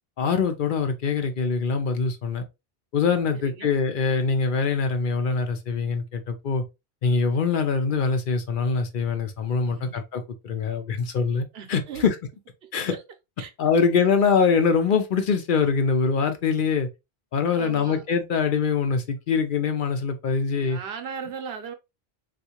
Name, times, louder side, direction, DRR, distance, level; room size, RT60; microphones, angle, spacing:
voice 1, 0.2-2.4 2.9-6.6 7.0-12.1 12.7-12.9 13.6-16.9 17.3-20.8, left 5 dB, 60° left, 0.7 m, -23 dB
voice 2, 3.3-3.7 9.6-10.0 11.5-12.1 12.6-13.0 13.4-13.8 17.5-18.0 20.4-21.7, right 6 dB, 80° right, 0.9 m, -38 dB
3.6 x 2.5 x 2.8 m
omnidirectional pair, 1.0 m